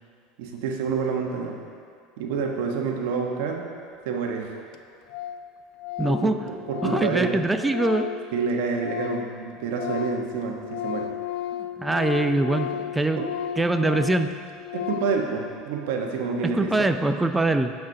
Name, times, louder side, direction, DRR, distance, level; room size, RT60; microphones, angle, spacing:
voice 1, 0.4-1.6 2.2-3.7 4.0-4.5 6.1-7.4 8.3-11.1 12.5-12.8 13.2-13.3 14.7-16.9, right 5 dB, 65° right, 1 dB, 1.3 m, -28 dB
Organ, 4.1-4.2 4.4-4.5 4.7-4.8 5.1-5.5 5.8-9.4 9.6-15.3, left 10 dB, 55° left, 0.5 m, -33 dB
voice 2, 6.0-6.4 6.8-8.1 11.8-13.2 13.6-14.3 16.5-17.7, right 2 dB, 10° right, 8 dB, 0.7 m, -23 dB
18.0 x 6.1 x 3.0 m, 2.2 s
hypercardioid pair, 80°, 0 cm